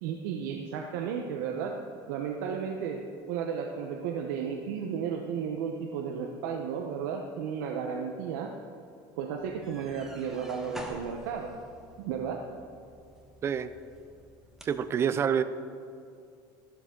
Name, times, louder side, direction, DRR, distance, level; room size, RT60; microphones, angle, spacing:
voice 1, 0.0-1.8 2.1-3.0 3.3-8.5 9.2-11.6 12.0-12.5, right 7 dB, 85° right, 2 dB, 0.9 m, -33 dB
sound 1, 9.4-14.9, right 1 dB, 5° right, 1.2 m, -48 dB
voice 2, 14.6-15.4, right 8 dB, 25° right, 13 dB, 0.4 m, -27 dB
12.5 x 12.0 x 3.8 m, 2.4 s
cardioid pair, 155°, 10 cm